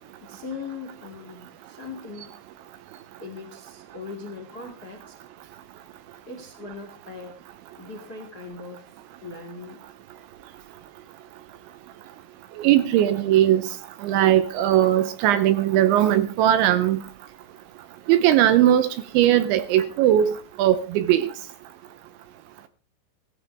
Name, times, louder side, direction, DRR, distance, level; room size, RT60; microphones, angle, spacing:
voice 1, 0.2-2.3 3.2-5.1 6.3-7.4 7.8-9.8, left 4 dB, 40° left, 1.3 m, -39 dB
voice 2, 12.6-13.6 14.0-17.0 18.1-21.3, right 12 dB, 80° right, 2.9 m, -19 dB
16.5 x 15.5 x 3.5 m
omnidirectional pair, 5.8 m